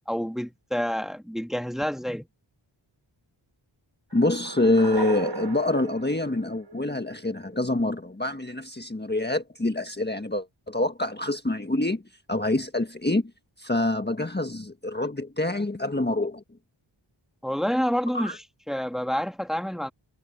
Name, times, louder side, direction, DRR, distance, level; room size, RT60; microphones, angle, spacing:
voice 1, 0.1-2.3 17.4-19.9, equal, ahead, 2.0 m, -28 dB
voice 2, 4.1-12.0 12.3-13.3 13.6-16.4 18.1-18.4, left 2 dB, 20° left, 1.5 m, -26 dB
sound 1, 4.1-7.2, right 3 dB, 60° right, 5.5 m, -35 dB
wide cardioid pair, 60°, 47 cm